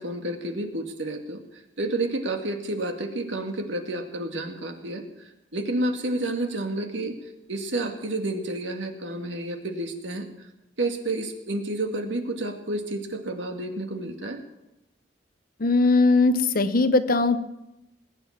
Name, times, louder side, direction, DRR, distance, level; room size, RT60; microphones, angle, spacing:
voice 1, 0.0-1.4 1.8-5.0 5.5-7.1 7.5-10.3 10.8-14.4, right 2 dB, 90° right, 4 dB, 2.2 m, -30 dB
voice 2, 15.6-17.4, left 3 dB, 55° left, 11 dB, 1.0 m, -20 dB
20.5 x 9.4 x 7.3 m, 0.93 s
head